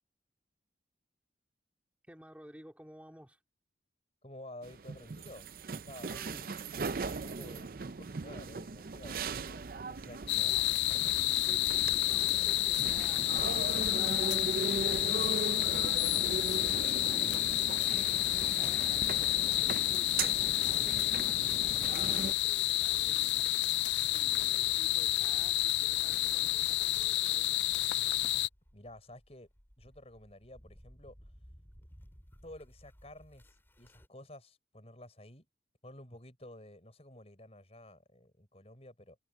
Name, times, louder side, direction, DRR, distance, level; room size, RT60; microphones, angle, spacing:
voice 1, 2.1-3.4 6.0-6.5 11.5-16.3 17.0-23.4 24.1-27.6, equal, 10° right, 3.4 m, -55 dB
voice 2, 4.2-5.5 5.7-6.5 7.1-10.6 24.0-24.2 24.5-24.8 28.7-29.5 29.8-31.2 32.4-35.5 35.8-39.2, left 1 dB, 35° left, 6.9 m, -52 dB
sound 1, 4.6-22.3, right 4 dB, 55° right, 0.6 m, -39 dB
sound 2, 10.3-28.5, left 16 dB, 85° left, 0.4 m, -30 dB
sound 3, 28.3-34.1, equal, 15° left, 5.9 m, -61 dB
head